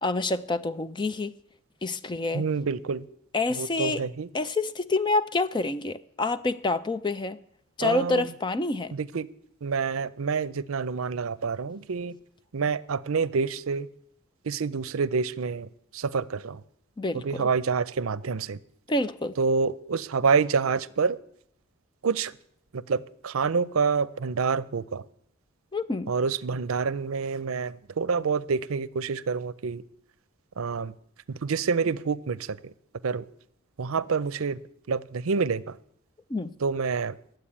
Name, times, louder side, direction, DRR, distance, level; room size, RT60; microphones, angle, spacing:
voice 1, 0.0-1.3 1.8-2.4 3.3-4.0 4.3-7.4 7.8-8.9 17.0-17.5 18.9-19.3 25.7-26.1 36.3-36.5, left 2 dB, 20° left, 0.5 m, -27 dB
voice 2, 2.3-3.0 3.5-4.3 7.8-8.3 8.9-9.3 9.6-12.2 12.5-13.9 14.4-16.6 17.1-18.6 19.4-21.2 22.0-22.3 22.7-25.0 26.1-29.8 30.6-30.9 31.3-32.7 33.0-33.3 33.8-34.6 34.9-35.8 36.6-37.2, right 5 dB, 80° right, 0.6 m, -27 dB
12.0 x 7.8 x 9.9 m
head